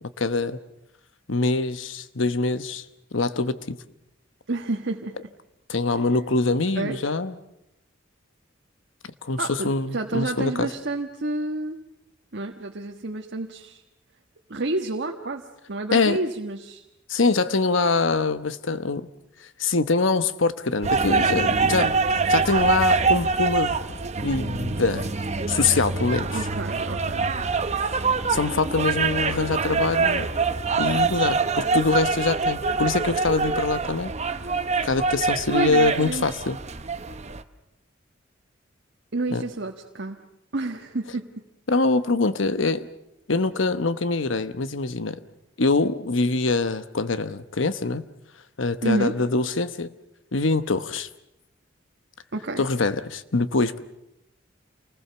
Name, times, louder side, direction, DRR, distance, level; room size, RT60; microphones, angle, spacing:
voice 1, 0.2-0.6 1.3-2.8 3.1-3.8 5.7-7.4 9.2-10.7 15.9-16.2 17.1-19.1 19.6-21.9 22.3-23.8 24.2-25.1 25.5-26.4 28.3-30.3 30.8-34.1 34.8-36.6 39.3-39.4 41.7-42.9 43.3-45.1 45.6-48.0 48.6-49.9 50.3-51.1 52.6-53.8, left 3 dB, 70° left, 12 dB, 1.0 m, -24 dB
voice 2, 4.5-5.2 6.7-7.0 9.4-11.8 12.3-13.8 14.5-15.4 15.7-16.8 26.3-27.3 35.5-36.2 39.1-40.2 40.5-41.3 48.8-49.1 52.3-52.6, right 2 dB, 60° right, 2 dB, 1.4 m, -29 dB
sound 1, 20.8-37.4, right 4 dB, 35° right, 0.9 m, -24 dB
28.5 x 20.0 x 7.0 m, 0.84 s
head